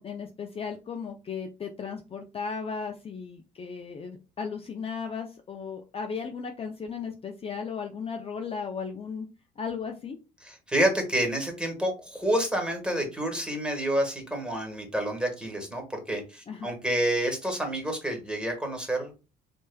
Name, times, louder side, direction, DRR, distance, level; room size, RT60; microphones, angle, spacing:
voice 1, 0.0-9.3 9.6-10.2 16.5-16.7, left 5 dB, 30° left, 4 dB, 0.5 m, -36 dB
voice 2, 10.4-19.2, right 1 dB, 5° right, 3 dB, 1.4 m, -29 dB
3.4 x 3.1 x 2.2 m, 0.31 s
hypercardioid pair, 60°, 20 cm